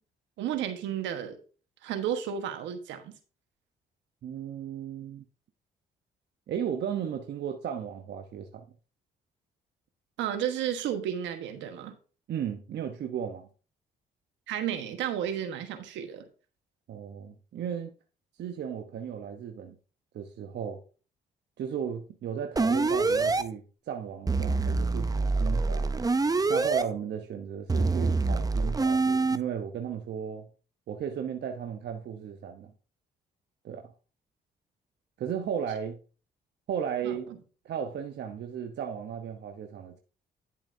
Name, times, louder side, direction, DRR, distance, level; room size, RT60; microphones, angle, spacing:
voice 1, 0.4-1.4 1.8-3.1 10.2-11.9 14.5-16.3 37.0-37.2, right 9 dB, 80° right, 1.3 m, -32 dB
voice 2, 4.2-5.2 6.5-8.7 12.3-13.5 16.9-17.9 18.4-19.8 20.1-20.8 21.6-25.9 26.5-30.5 30.9-32.7 33.6-33.9 35.2-36.0 36.7-37.3 37.6-40.0, right 8 dB, 65° right, 0.9 m, -35 dB
sound 1, 22.6-23.4 24.3-26.8 27.7-29.4, right 3 dB, 20° right, 0.6 m, -25 dB
10.5 x 7.1 x 2.7 m
supercardioid pair, 60°, 19 cm